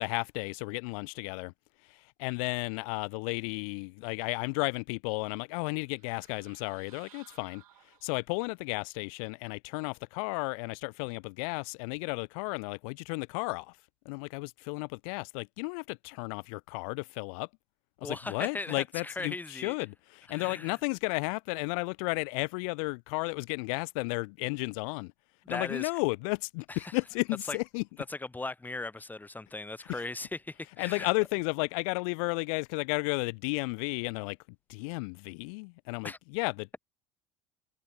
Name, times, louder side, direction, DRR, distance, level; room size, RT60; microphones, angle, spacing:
voice 1, 0.0-1.5 2.2-7.6 8.0-13.7 14.0-17.5 18.0-25.1 25.5-27.8 29.9-30.0 30.8-34.4 34.7-36.8, left 31 dB, 75° left, 1.2 m, -33 dB
sound 1, 5.8-8.4, right 14 dB, 90° right, 3.9 m, -59 dB
voice 2, 18.0-19.8 20.3-20.8 25.5-25.9 26.7-26.9 27.5-27.6 28.1-31.1 36.0-36.2, left 2 dB, 10° left, 0.7 m, -38 dB
hypercardioid pair, 85°, 18 cm